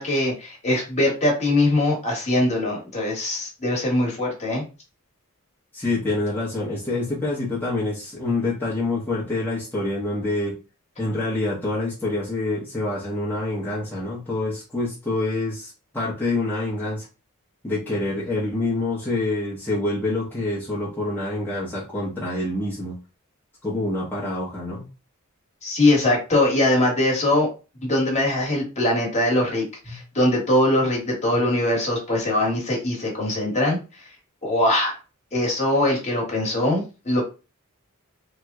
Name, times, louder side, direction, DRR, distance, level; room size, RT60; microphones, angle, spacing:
voice 1, 0.0-4.6 25.6-27.5 27.8-33.8 34.4-34.9 35.3-37.2, left 1 dB, 30° left, -1 dB, 1.3 m, -22 dB
voice 2, 5.7-10.5 11.0-17.1 17.6-22.9 23.6-24.9 29.9-30.0, left 2 dB, 10° left, -8 dB, 0.8 m, -26 dB
3.0 x 2.1 x 3.5 m, 0.31 s
head